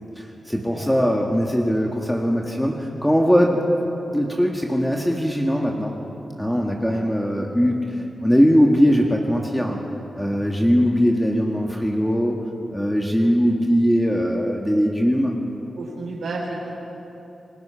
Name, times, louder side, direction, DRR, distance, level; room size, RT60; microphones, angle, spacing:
voice 1, 0.2-3.6 4.1-5.9 6.4-9.8 10.2-12.4 12.7-15.3, equal, 5° left, 0 dB, 1.9 m, -20 dB
voice 2, 0.7-1.0 6.8-7.0 13.2-13.3 15.8-16.8, right 2 dB, 80° right, -4 dB, 4.1 m, -33 dB
29.0 x 20.5 x 5.9 m, 3.0 s
wide cardioid pair, 100°, 0 cm